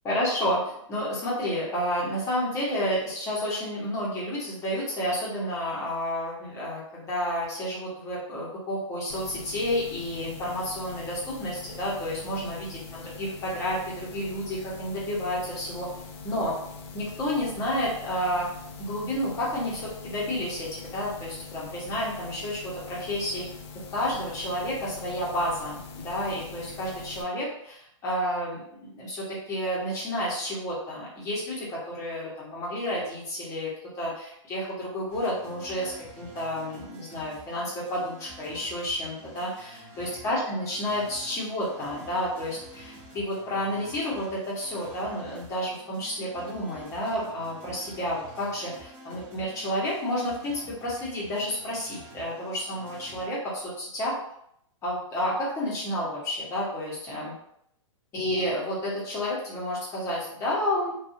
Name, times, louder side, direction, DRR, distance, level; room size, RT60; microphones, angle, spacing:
voice 1, 0.0-15.9 16.2-16.5 16.9-18.5 18.8-23.4 23.9-33.7 33.9-54.1 54.8-57.3 58.1-60.9, equal, 15° left, -7 dB, 1.0 m, -30 dB
sound 1, 9.1-27.2, left 5 dB, 50° left, 0.5 m, -43 dB
sound 2, 35.1-53.3, right 1 dB, 10° right, 0.9 m, -49 dB
2.6 x 2.4 x 2.7 m, 0.73 s
hypercardioid pair, 155°, 17 cm